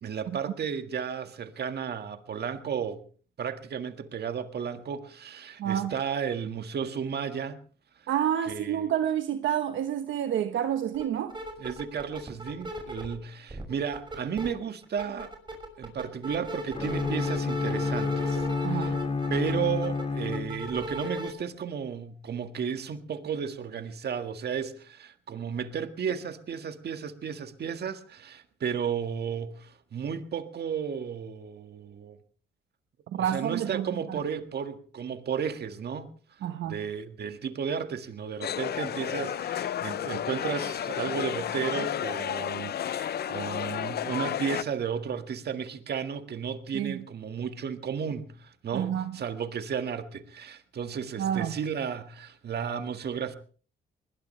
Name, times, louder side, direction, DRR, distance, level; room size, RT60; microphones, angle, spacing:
voice 1, 0.0-3.0 3.4-7.6 8.5-8.9 11.6-15.3 15.8-19.0 19.3-32.2 33.1-36.1 36.6-53.4, right 7 dB, 55° right, 1.8 m, -33 dB
voice 2, 5.6-5.9 8.1-11.4 18.6-19.0 33.1-34.2 36.4-36.8 46.7-47.0 48.7-49.2 51.2-51.6, right 10 dB, 75° right, 1.2 m, -29 dB
sound 1, 10.9-11.0 11.3-13.2 13.5-14.5 14.8-21.3, equal, 25° right, 6.0 m, -37 dB
Bowed string instrument, 16.7-20.9, left 4 dB, 30° left, 2.6 m, -30 dB
sound 2, 38.4-44.6, left 10 dB, 55° left, 0.7 m, -32 dB
21.5 x 20.0 x 3.3 m
cardioid pair, 90°, 20 cm